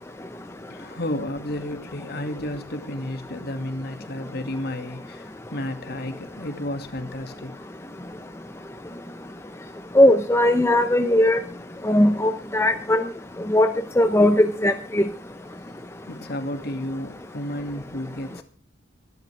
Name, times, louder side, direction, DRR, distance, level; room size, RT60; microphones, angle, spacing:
voice 1, 0.7-7.5 16.1-18.4, left 1 dB, 55° left, 8 dB, 2.3 m, -32 dB
voice 2, 9.9-11.4 11.8-13.0 13.5-15.0, left 1 dB, 15° left, 7 dB, 0.8 m, -18 dB
23.5 x 12.0 x 3.4 m, 0.33 s
head